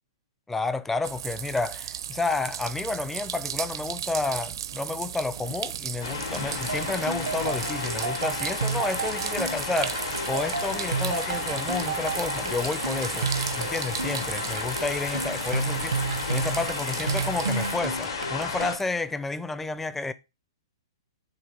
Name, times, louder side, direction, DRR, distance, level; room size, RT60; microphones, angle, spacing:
voice 1, 0.5-13.3 13.6-20.1, left 3 dB, 10° left, 0.4 m, -31 dB
sound 1, 1.0-17.8, right 9 dB, 65° right, 0.5 m, -36 dB
sound 2, 6.0-18.8, left 4 dB, 80° left, 2.2 m, -33 dB
sound 3, 6.7-19.0, right 4 dB, 90° right, 0.8 m, -32 dB
6.6 x 2.8 x 5.3 m
hypercardioid pair, 120°, 3 cm